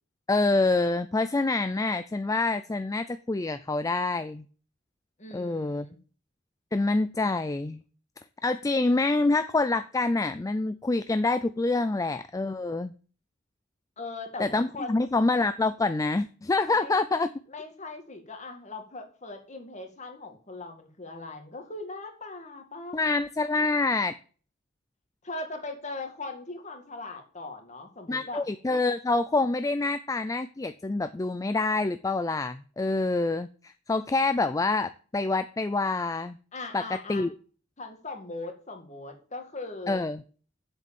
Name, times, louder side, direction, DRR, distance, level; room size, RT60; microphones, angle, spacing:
voice 1, 0.3-4.5 5.3-5.9 6.7-7.8 8.4-12.9 14.4-17.3 22.9-24.1 28.1-36.4 36.7-37.4 39.9-40.2, left 3 dB, 15° left, 12 dB, 0.4 m, -26 dB
voice 2, 5.2-6.0 14.0-15.1 16.8-17.0 17.5-23.0 25.2-28.4 36.5-37.3 37.8-40.1, left 3 dB, 35° left, 5 dB, 2.1 m, -39 dB
7.7 x 7.4 x 7.2 m, 0.40 s
head